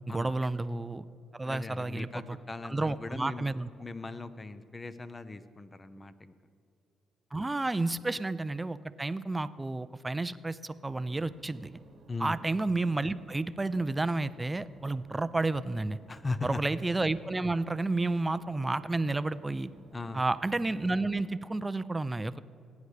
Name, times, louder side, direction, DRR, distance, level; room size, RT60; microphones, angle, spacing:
voice 1, 0.1-1.0 1.3-2.4 2.6-3.7 7.3-11.8 12.2-16.0 16.4-19.7 20.1-22.4, right 2 dB, 15° right, 15 dB, 0.4 m, -31 dB
voice 2, 1.4-6.4 7.9-8.0 12.1-12.4 16.1-16.6 19.9-20.3, left 3 dB, 25° left, 12 dB, 0.6 m, -39 dB
sound 1, 10.9-21.4, right 3 dB, 60° right, 1.1 m, -57 dB
18.0 x 9.4 x 3.3 m, 2.6 s
cardioid pair, 90°, 0 cm